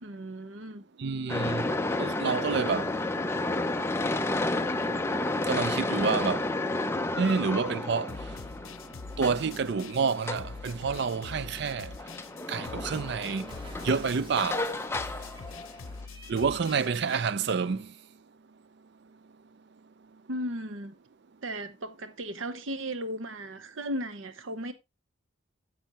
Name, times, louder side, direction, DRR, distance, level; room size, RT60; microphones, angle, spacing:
voice 1, 0.0-0.8 20.3-20.9 21.4-24.7, equal, 75° right, 0.9 m, -36 dB
voice 2, 1.0-1.7 2.0-2.9 5.5-6.4 7.2-8.1 9.2-11.9 12.5-13.5 13.8-14.6 16.3-17.9, right 5 dB, 55° right, 0.4 m, -28 dB
sound 1, 1.3-16.0, left 2 dB, 10° left, 0.6 m, -32 dB
sound 2, 8.1-17.2, left 4 dB, 90° left, 0.7 m, -45 dB
Cat, 13.5-16.8, right 1 dB, 25° right, 1.6 m, -49 dB
10.0 x 8.0 x 2.9 m
head